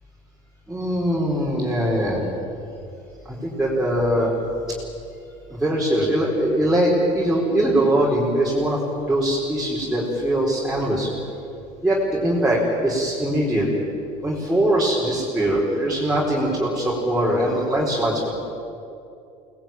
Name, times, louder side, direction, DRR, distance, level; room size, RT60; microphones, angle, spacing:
voice 1, 0.7-2.2 3.4-4.3 5.6-8.8 9.1-11.1 11.8-13.7 14.2-18.3, right 1 dB, 5° right, -6 dB, 4.5 m, -21 dB
25.0 x 19.5 x 9.1 m, 2.7 s
cardioid pair, 145°, 15 cm